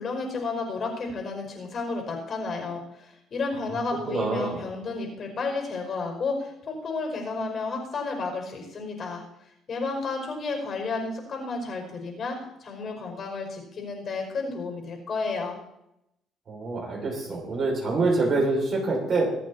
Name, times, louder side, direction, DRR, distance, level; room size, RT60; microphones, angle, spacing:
voice 1, 0.0-9.2 9.7-15.6, left 3 dB, 45° left, 2 dB, 5.4 m, -32 dB
voice 2, 4.1-4.6 16.5-19.2, right 3 dB, 40° right, -2 dB, 6.7 m, -25 dB
24.5 x 8.4 x 4.3 m, 0.82 s
cardioid pair, 105°, 0 cm